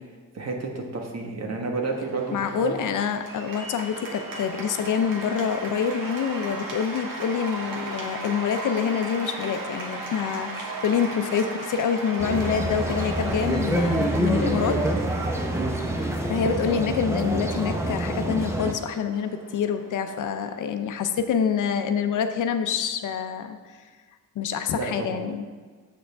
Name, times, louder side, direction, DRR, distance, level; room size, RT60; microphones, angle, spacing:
voice 1, 0.3-2.8 15.6-15.7 24.7-25.2, right 3 dB, 50° right, 1 dB, 1.4 m, -31 dB
Cheering / Applause, 1.9-21.2, right 2 dB, 80° right, 1.4 m, -37 dB
voice 2, 2.3-14.8 16.3-23.8 24.4-25.4, left 7 dB, 65° left, 8 dB, 0.6 m, -26 dB
sound 1, 12.2-18.7, right 1 dB, 10° right, 0.7 m, -26 dB
7.7 x 6.4 x 3.5 m, 1.5 s
cardioid pair, 80°, 34 cm